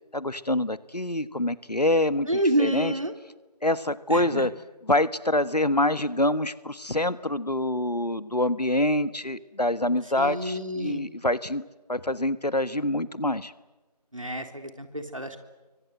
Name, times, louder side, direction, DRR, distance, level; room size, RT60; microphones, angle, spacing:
voice 1, 0.1-2.3 2.6-2.9 3.6-4.5 4.9-11.6 11.9-13.5, left 1 dB, 75° left, 15 dB, 1.5 m, -25 dB
voice 2, 2.3-3.1 4.1-4.5 10.2-11.0 14.1-15.4, right 1 dB, 50° right, 7 dB, 3.3 m, -28 dB
28.0 x 24.5 x 7.9 m, 1.2 s
figure-of-eight pair, 180°, 21 cm